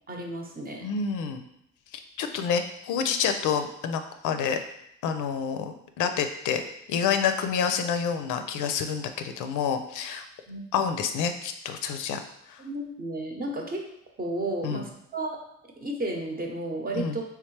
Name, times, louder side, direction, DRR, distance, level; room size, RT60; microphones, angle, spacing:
voice 1, 0.1-0.9 10.5-10.7 12.6-13.8 14.2-15.4 15.8-17.2, right 1 dB, 30° right, 1 dB, 0.8 m, -32 dB
voice 2, 0.8-1.4 2.2-4.6 5.0-6.6 6.9-10.3 10.7-12.2 12.5-12.6 14.6-14.8 16.9-17.2, left 7 dB, 85° left, 7 dB, 0.5 m, -28 dB
3.4 x 3.2 x 3.2 m, 0.79 s
cardioid pair, 90°, 30 cm